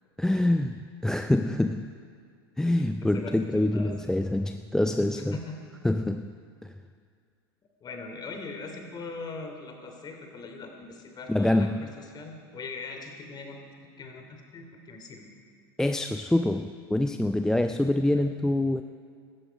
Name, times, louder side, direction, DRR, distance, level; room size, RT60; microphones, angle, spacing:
voice 1, 0.2-1.9 2.6-5.4 5.8-6.3 6.6-6.7 11.3-11.9 15.8-18.8, left 1 dB, 5° left, 8 dB, 0.4 m, -25 dB
voice 2, 3.1-3.9 5.3-5.6 7.8-13.6 14.0-15.3, left 4 dB, 30° left, 3 dB, 2.9 m, -41 dB
17.0 x 13.5 x 5.2 m, 2.2 s
hypercardioid pair, 85°, 14 cm